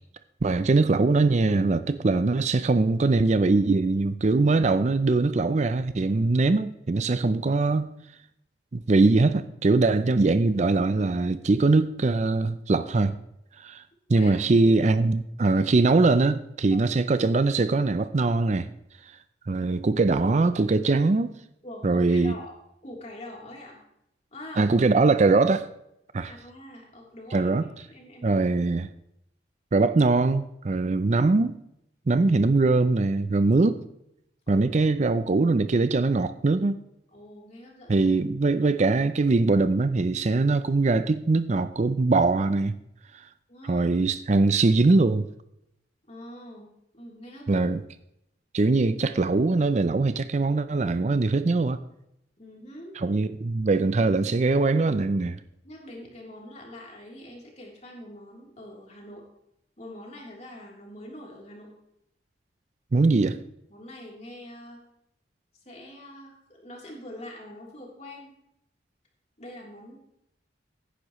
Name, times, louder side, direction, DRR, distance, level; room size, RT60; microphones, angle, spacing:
voice 1, 0.4-7.9 8.7-13.1 13.6-13.8 14.1-18.7 19.5-21.3 21.8-22.3 24.6-25.7 26.1-26.3 27.3-27.7 28.2-28.9 29.7-31.6 32.1-33.8 34.5-36.8 37.9-42.7 43.1-43.2 43.7-45.3 47.5-47.8 48.5-51.8 53.0-55.4 62.9-63.4, right 3 dB, 40° right, 0.4 m, -22 dB
voice 2, 14.1-14.4 16.7-16.8 19.6-19.7 21.6-22.6 22.8-23.8 24.3-24.6 26.2-27.5 27.9-28.4 34.5-34.7 37.1-38.1 43.5-43.9 46.1-47.7 52.4-52.9 53.6-53.9 55.6-59.2 59.8-61.7 63.7-64.8 65.6-68.3 69.4-70.0, left 1 dB, 35° left, 3.3 m, -44 dB
16.0 x 10.0 x 3.1 m
head